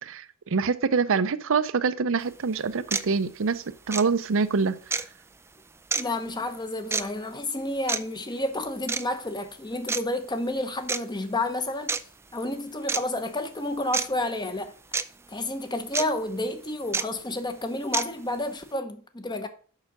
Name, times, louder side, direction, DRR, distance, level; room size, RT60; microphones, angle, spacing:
voice 1, 0.0-5.0, right 5 dB, 65° right, 0.6 m, -26 dB
sound 1, 2.2-2.3 2.9-3.1 3.9-4.1 4.9-5.1 5.9-6.0 6.9-7.1 7.9-8.0 8.9-9.1 9.9-10.0 10.9-11.0 11.9-12.0 12.9-13.0 13.9-14.1 14.9-15.0 15.9-16.1 16.9-17.0 17.9-18.1, right 4 dB, 10° right, 0.3 m, -27 dB
voice 2, 6.0-12.0 12.3-14.7 15.3-19.5, left 1 dB, 20° left, 0.9 m, -30 dB
6.7 x 5.8 x 6.0 m
head